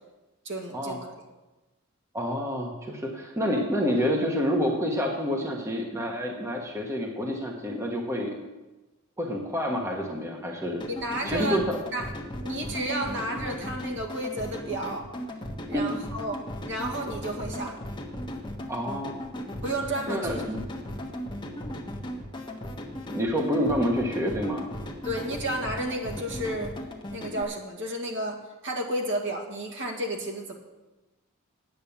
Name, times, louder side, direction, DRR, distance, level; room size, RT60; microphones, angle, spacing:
voice 1, 0.5-1.3 10.9-11.6 11.9-12.1 12.4-15.1 15.7-17.8 19.6-20.4 25.0-26.7 27.1-30.5, right 1 dB, 55° right, 1 dB, 1.9 m, -32 dB
voice 2, 2.1-8.3 9.2-10.8 11.2-11.8 18.7-19.2 20.1-20.6 23.1-24.6, equal, 15° right, 1 dB, 1.2 m, -28 dB
glitch beat, 10.8-27.4, equal, 20° left, 1.2 m, -37 dB
9.3 x 9.0 x 7.1 m, 1.1 s
head